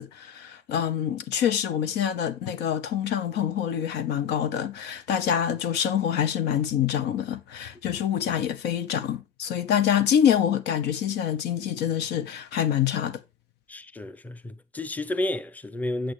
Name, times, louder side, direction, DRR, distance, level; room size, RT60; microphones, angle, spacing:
voice 1, 0.0-13.2, left 9 dB, 80° left, 1.0 m, -26 dB
voice 2, 13.7-16.1, left 1 dB, 10° left, 0.6 m, -31 dB
8.8 x 7.8 x 3.1 m
cardioid pair, 110°, 17 cm